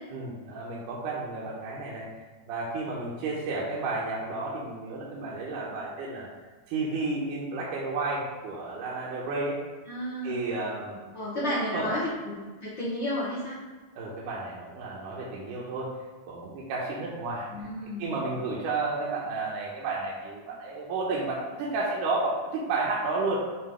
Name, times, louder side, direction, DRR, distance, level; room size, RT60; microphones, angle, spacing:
voice 1, 0.1-6.3 6.7-9.6 10.2-11.0 11.3-11.9 14.0-15.9 16.3-17.7 18.0-23.4, right 3 dB, 75° right, -5 dB, 2.2 m, -32 dB
voice 2, 9.9-10.4 11.1-12.1 12.6-13.6 17.5-18.1, left 1 dB, 55° left, -9 dB, 1.3 m, -31 dB
7.5 x 2.5 x 4.9 m, 1.3 s
omnidirectional pair, 3.8 m